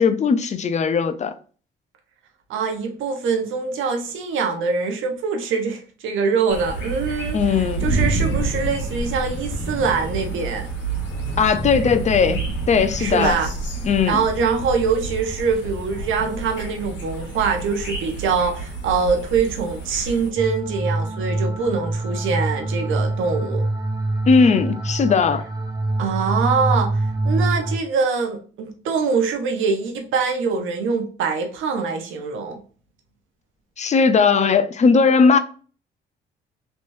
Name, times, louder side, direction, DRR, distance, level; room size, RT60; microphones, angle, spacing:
voice 1, 0.0-1.3 7.3-7.9 11.4-13.4 13.8-14.2 24.3-25.4 33.8-35.4, left 5 dB, 35° left, 0.5 m, -18 dB
voice 2, 2.5-10.7 13.0-13.5 14.1-23.7 26.0-32.6, right 5 dB, 80° right, 0.9 m, -24 dB
sound 1, 6.5-20.3, right 2 dB, 70° left, 1.3 m, -28 dB
sound 2, 20.4-27.8, right 2 dB, 20° right, 1.0 m, -24 dB
3.3 x 3.0 x 2.6 m
cardioid pair, 90°, 20 cm